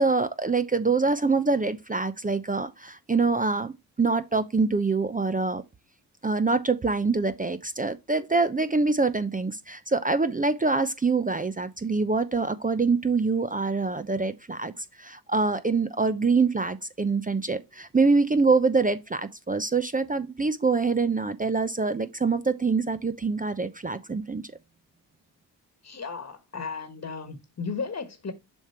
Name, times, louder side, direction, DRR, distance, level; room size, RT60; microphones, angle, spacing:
voice 1, 0.0-3.7 4.0-5.6 6.2-24.4, right 4 dB, 20° right, 0.7 m, -25 dB
voice 2, 25.8-28.3, left 5 dB, 35° left, 1.5 m, -35 dB
7.1 x 3.6 x 4.3 m
hypercardioid pair, 45°, 45 cm